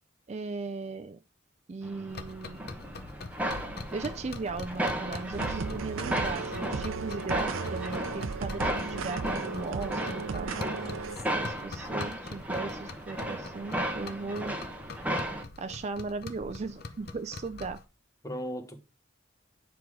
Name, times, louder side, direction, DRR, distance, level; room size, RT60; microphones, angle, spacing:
voice 1, 0.3-1.2 1.7-2.7 3.9-10.5 11.3-14.6 15.6-17.8, right 4 dB, 35° right, 0.4 m, -37 dB
sound 1, 1.8-15.4, right 1 dB, 5° right, 0.9 m, -35 dB
sound 2, 2.1-17.8, left 3 dB, 50° left, 0.7 m, -44 dB
sound 3, 5.3-11.2, right 4 dB, 80° right, 0.6 m, -36 dB
voice 2, 11.1-11.6 18.2-18.8, equal, 15° left, 1.0 m, -38 dB
7.9 x 4.8 x 3.6 m
head